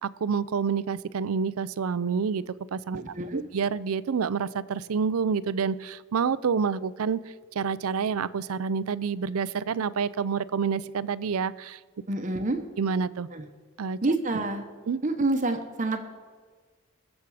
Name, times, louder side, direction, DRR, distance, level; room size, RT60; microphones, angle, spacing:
voice 1, 0.0-2.4 2.7-3.0 3.3-7.2 7.5-11.8 12.8-13.3 13.8-14.0 14.9-15.0, right 6 dB, 85° right, 18 dB, 0.5 m, -28 dB
voice 2, 2.9-3.4 12.1-12.6 13.3-13.4 14.0-14.6 15.0-16.0, right 2 dB, 35° right, 6 dB, 0.9 m, -27 dB
21.5 x 7.3 x 4.8 m, 1.5 s
head